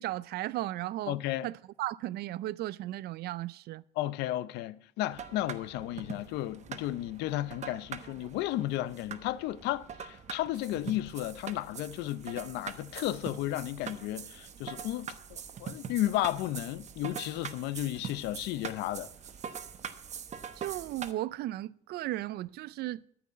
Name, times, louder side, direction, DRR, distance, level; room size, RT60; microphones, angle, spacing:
voice 1, 0.0-1.2 1.4-3.8 20.6-23.0, right 15 dB, 70° right, 0.4 m, -35 dB
voice 2, 1.1-1.5 4.0-19.1, left 14 dB, 90° left, 0.6 m, -33 dB
sound 1, 5.1-21.1, right 7 dB, 45° right, 1.0 m, -43 dB
13.0 x 6.0 x 7.4 m
cardioid pair, 110°, 17 cm